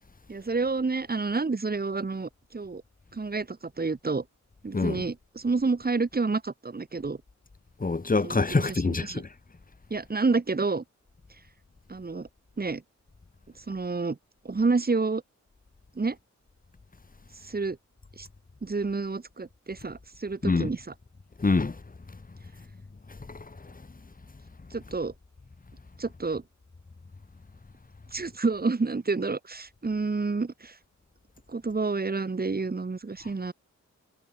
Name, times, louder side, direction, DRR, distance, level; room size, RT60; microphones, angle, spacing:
voice 1, 0.3-2.8 3.1-4.2 4.6-7.2 8.2-9.2 9.9-10.8 11.9-12.3 12.6-12.8 13.6-14.2 14.4-15.2 16.0-16.2 17.4-17.8 18.2-18.3 18.6-20.8 24.7-25.1 26.0-26.4 28.1-30.8 31.5-33.5, right 4 dB, 30° right, 7.5 m, -29 dB
voice 2, 4.7-5.1 7.8-9.3 20.4-20.7 21.4-21.8 23.3-23.8, left 3 dB, 30° left, 7.3 m, -26 dB
wide cardioid pair, 145°, 29 cm